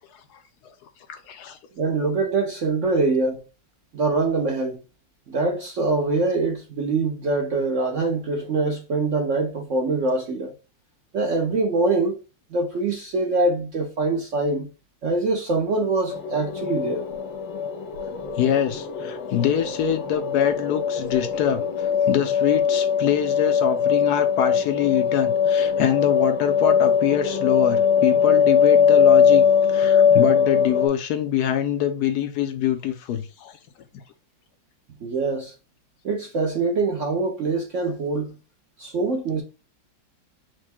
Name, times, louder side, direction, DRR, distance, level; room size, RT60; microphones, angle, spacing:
voice 1, 1.1-1.6 18.1-21.6 22.1-33.5, left 9 dB, 70° left, 1.0 m, -24 dB
voice 2, 1.8-3.4 3.9-4.8 5.3-10.5 11.1-12.2 12.5-14.7 15.0-17.0 35.0-35.5 36.0-38.4 38.8-39.4, right 3 dB, 60° right, 0.8 m, -24 dB
sound 1, 16.1-30.9, left 7 dB, 90° left, 1.5 m, -21 dB
4.6 x 2.2 x 4.3 m
omnidirectional pair, 2.0 m